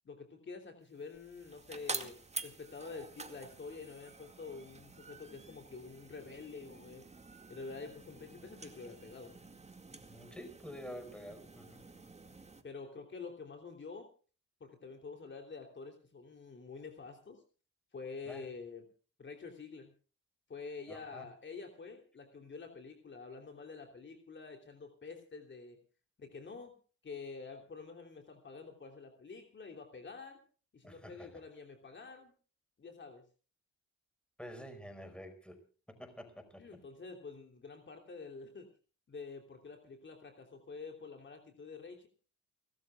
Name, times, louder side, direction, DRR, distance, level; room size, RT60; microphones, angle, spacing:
voice 1, 0.0-2.2 2.4-7.1 7.5-9.3 12.6-14.1 14.6-17.4 17.9-18.8 19.2-19.9 20.5-25.8 26.2-26.7 27.0-30.4 30.7-32.3 32.8-33.2 36.6-38.7 39.1-42.1, left 4 dB, 40° left, 4 dB, 3.2 m, -48 dB
sound 1, 0.9-12.6, right 3 dB, 20° right, 2.2 m, -48 dB
voice 2, 10.1-11.9 18.3-18.4 20.9-21.2 30.8-31.4 34.4-35.6 35.9-36.6, equal, 5° left, 8 dB, 5.1 m, -48 dB
29.5 x 13.5 x 2.4 m, 0.39 s
cardioid pair, 90°, 30 cm